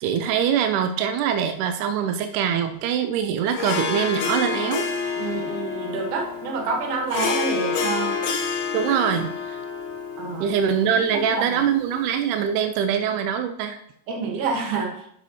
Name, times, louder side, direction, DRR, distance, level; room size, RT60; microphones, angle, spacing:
voice 1, 0.0-4.8 8.7-9.6 10.4-13.8, right 8 dB, 85° right, 7 dB, 1.8 m, -23 dB
Harp, 3.5-12.1, left 5 dB, 65° left, 1.7 m, -29 dB
voice 2, 5.2-8.1 10.2-10.5 11.0-11.6 14.1-15.0, right 4 dB, 65° right, 2 dB, 2.5 m, -28 dB
10.5 x 7.1 x 2.8 m, 0.71 s
omnidirectional pair, 4.2 m